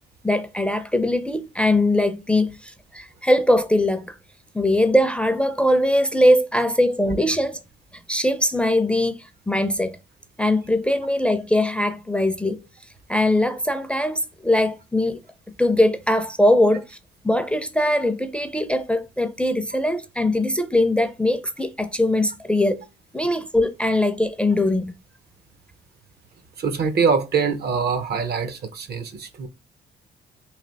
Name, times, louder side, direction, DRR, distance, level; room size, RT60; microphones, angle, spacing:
voice 1, 0.2-4.1 4.5-7.6 8.1-10.0 10.4-12.6 13.1-15.2 15.6-17.0 17.2-22.9 23.1-24.9, left 1 dB, 5° left, 0.5 m, -21 dB
voice 2, 26.6-29.5, right 5 dB, 55° right, 0.7 m, -23 dB
3.3 x 2.7 x 3.9 m
cardioid pair, 90°, 20 cm